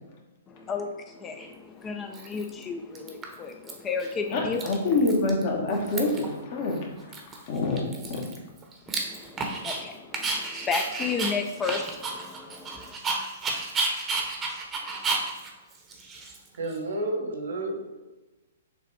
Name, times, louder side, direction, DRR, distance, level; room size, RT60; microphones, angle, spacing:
voice 1, 0.5-4.6 8.9-12.9, left 5 dB, 20° left, 6 dB, 0.4 m, -33 dB
Dog, 1.4-1.5 2.1-2.6 2.9-3.7 4.0-4.1 4.4-5.4 5.7-6.3 6.7-6.8 7.1-9.8 10.1-16.8, right 3 dB, 20° right, 0.7 m, -32 dB
voice 2, 4.3-7.2 7.5-7.8 8.1-8.2, left 2 dB, 45° left, 1 dB, 1.0 m, -26 dB
voice 3, 16.6-18.0, right 1 dB, 80° right, 2 dB, 1.1 m, -31 dB
6.7 x 2.5 x 3.2 m, 1.1 s
hypercardioid pair, 130°, 0 cm